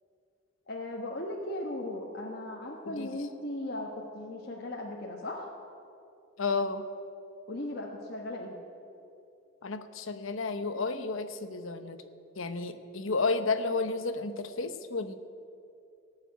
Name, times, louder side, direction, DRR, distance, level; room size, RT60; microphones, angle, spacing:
voice 1, 0.7-5.5 7.5-8.6, left 1 dB, 50° left, -2 dB, 1.3 m, -37 dB
voice 2, 2.8-3.2 6.4-6.8 9.6-12.0 12.4-15.2, left 3 dB, 80° left, 10 dB, 0.9 m, -32 dB
19.0 x 6.8 x 9.2 m, 2.6 s
head